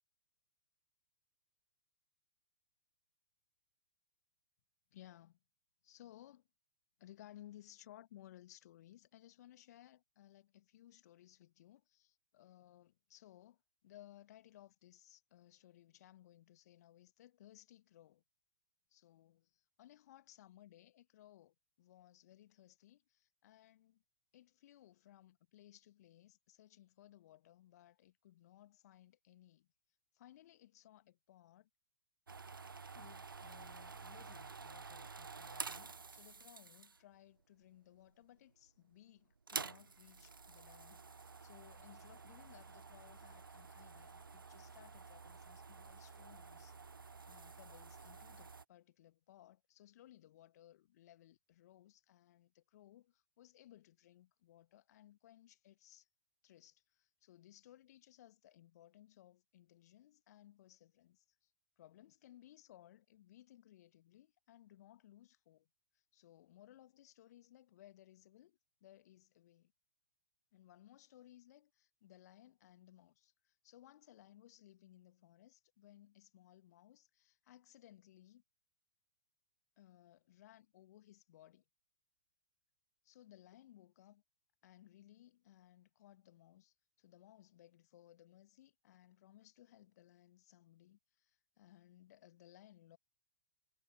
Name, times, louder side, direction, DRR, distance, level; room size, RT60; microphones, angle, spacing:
voice 1, 4.9-5.4 5.8-6.5 7.0-18.2 18.9-24.0 24.3-29.7 30.1-31.7 32.9-46.8 47.2-56.1 56.4-61.5 61.8-65.7 65.9-69.7 70.5-78.4 79.8-81.6 83.0-84.2 84.6-93.0, left 13 dB, 50° left, 2.2 m, -62 dB
sound 1, 32.3-37.2 37.9-38.4 38.7-38.8 39.3-48.6, right 4 dB, 75° right, 1.7 m, -50 dB
figure-of-eight pair, 110°, 11 cm